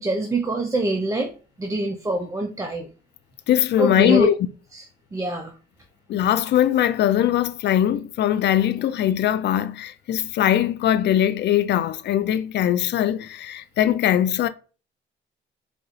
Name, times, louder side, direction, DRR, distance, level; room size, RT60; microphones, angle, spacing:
voice 1, 0.0-1.3 1.6-2.9 3.8-4.3 4.7-4.9 5.1-5.6, right 2 dB, 15° right, 0.5 m, -24 dB
voice 2, 3.5-4.3 6.1-14.5, left 11 dB, 60° left, 0.4 m, -21 dB
4.4 x 2.4 x 2.4 m
cardioid pair, 90°, 20 cm